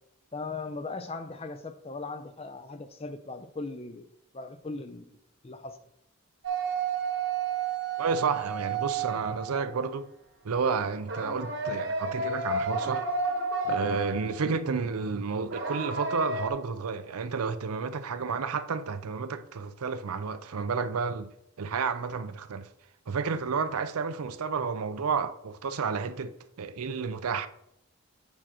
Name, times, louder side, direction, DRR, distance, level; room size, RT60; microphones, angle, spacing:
voice 1, 0.3-5.2 5.4-5.8, left 3 dB, 25° left, 0.5 m, -39 dB
sound 1, 6.4-9.9 11.1-14.5 15.5-16.5, right 4 dB, 55° right, 1.1 m, -31 dB
voice 2, 8.0-10.1 10.4-13.1 13.6-21.3 21.6-22.7 23.1-27.5, right 5 dB, 85° right, 0.5 m, -31 dB
8.7 x 6.2 x 2.9 m
head